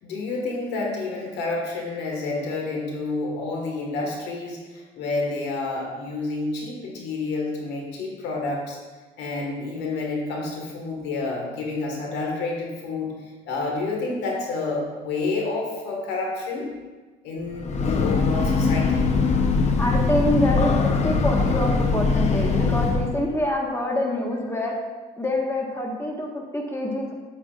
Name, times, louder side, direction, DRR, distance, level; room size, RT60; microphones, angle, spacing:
voice 1, 0.0-8.8 9.2-13.1 13.4-16.7 17.2-19.1, left 3 dB, 85° left, 0 dB, 1.6 m, -29 dB
Breathing / Train, 17.5-23.2, left 4 dB, 40° left, 0.8 m, -22 dB
voice 2, 19.8-24.7 25.2-27.1, left 1 dB, 15° left, -1 dB, 1.4 m, -26 dB
8.2 x 7.8 x 2.4 m, 1.3 s
cardioid pair, 110°, 17 cm